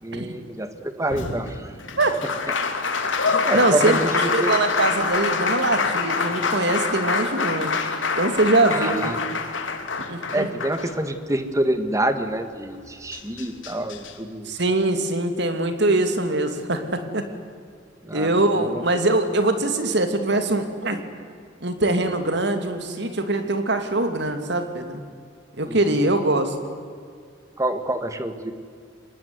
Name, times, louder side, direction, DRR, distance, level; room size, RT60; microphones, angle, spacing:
voice 1, 0.0-1.7 3.2-4.6 8.7-9.2 10.3-14.5 18.0-18.4 18.7-18.8 25.7-25.8 27.6-28.5, right 1 dB, 15° right, 9 dB, 1.8 m, -27 dB
Applause, 1.1-11.4 12.7-12.8 13.1-14.1, left 4 dB, 85° left, 2.7 m, -26 dB
voice 2, 3.3-4.0 4.3-7.8 8.2-9.1 10.1-10.5 14.4-17.3 18.1-21.0 21.6-25.0 25.6-26.5, right 2 dB, 65° right, 8 dB, 2.7 m, -22 dB
25.0 x 20.5 x 9.6 m, 2.2 s
head